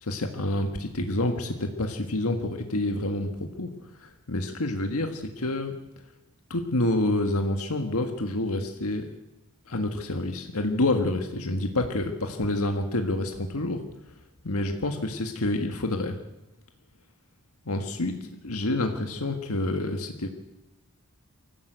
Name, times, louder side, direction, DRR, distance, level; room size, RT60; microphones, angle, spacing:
voice 1, 0.0-3.7 4.0-5.7 6.5-9.1 9.7-13.8 14.4-16.2 17.7-20.3, left 2 dB, 80° left, 5 dB, 1.7 m, -28 dB
24.0 x 15.0 x 8.1 m, 1.0 s
head